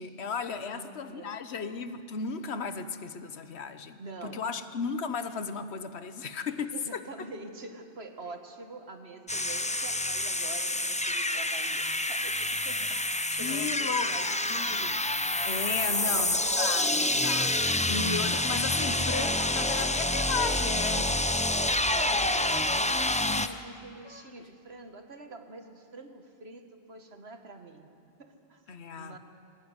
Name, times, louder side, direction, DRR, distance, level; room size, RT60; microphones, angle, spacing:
voice 1, 0.0-7.0 13.4-14.1 14.5-15.0 15.4-21.5 24.0-24.2 28.7-29.2, left 5 dB, 85° left, 10 dB, 1.3 m, -35 dB
voice 2, 0.6-1.4 4.0-4.4 6.7-15.0 15.9-16.3 21.6-27.9 28.2-28.6 29.0-29.2, right 3 dB, 75° right, 5 dB, 1.9 m, -46 dB
sound 1, 9.3-23.5, left 1 dB, 10° left, 0.4 m, -28 dB
22.0 x 17.5 x 9.7 m, 2.5 s
omnidirectional pair, 1.1 m